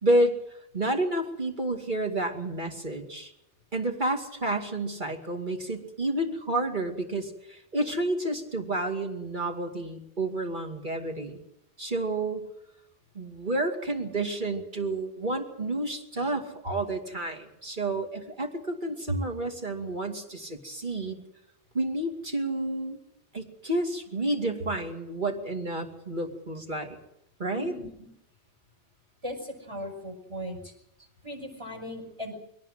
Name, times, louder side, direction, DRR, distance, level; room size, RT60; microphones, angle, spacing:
voice 1, 0.0-0.3 0.7-3.3 3.7-11.4 11.8-12.5 13.1-21.2 21.7-23.0 23.3-27.0 27.4-27.7, right 1 dB, 45° right, 3 dB, 2.7 m, -30 dB
voice 2, 27.6-27.9 29.2-30.7 31.2-32.3, left 1 dB, 25° right, 3 dB, 6.0 m, -38 dB
22.0 x 18.5 x 7.6 m, 0.78 s
omnidirectional pair, 1.1 m